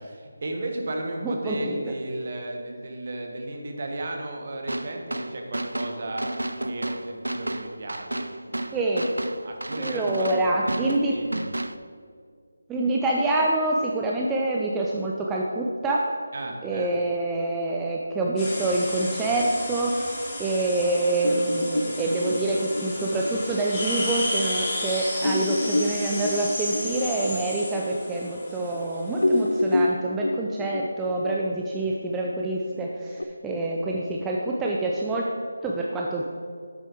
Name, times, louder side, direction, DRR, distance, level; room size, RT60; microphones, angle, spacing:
voice 1, 0.0-6.3 6.6-9.0 9.4-10.7 11.0-11.4 16.3-16.9, right 1 dB, 45° right, 2 dB, 1.3 m, -34 dB
voice 2, 1.2-1.9 8.7-9.0 9.8-11.1 12.7-16.1 16.6-20.0 20.4-35.3 35.6-36.3, right 2 dB, 10° right, -2 dB, 0.4 m, -26 dB
sound 1, 4.7-11.8, right 1 dB, 80° right, 0.4 m, -32 dB
sound 2, 18.4-29.8, left 1 dB, 15° left, 2.0 m, -33 dB
sound 3, 21.2-24.3 24.7-24.8 25.2-28.8 29.1-33.2, left 1 dB, 75° left, 0.5 m, -28 dB
7.8 x 6.8 x 4.5 m, 2.1 s
figure-of-eight pair, 160°, 0 cm